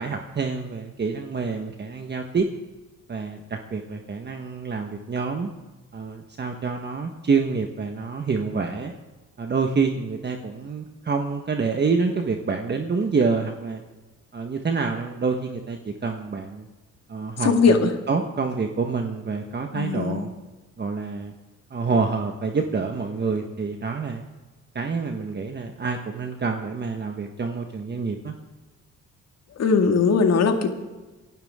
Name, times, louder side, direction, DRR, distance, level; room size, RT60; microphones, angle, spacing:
voice 1, 0.0-2.5 3.1-5.5 5.9-8.9 9.4-13.8 14.3-16.7 17.1-20.3 20.8-21.3 21.7-24.2 24.7-28.3, right 4 dB, 35° right, 4 dB, 1.4 m, -27 dB
voice 2, 17.4-17.9 19.7-20.3 29.6-30.7, left 5 dB, 55° left, 5 dB, 2.1 m, -19 dB
24.5 x 12.0 x 3.7 m, 1.2 s
cardioid pair, 90°, 30 cm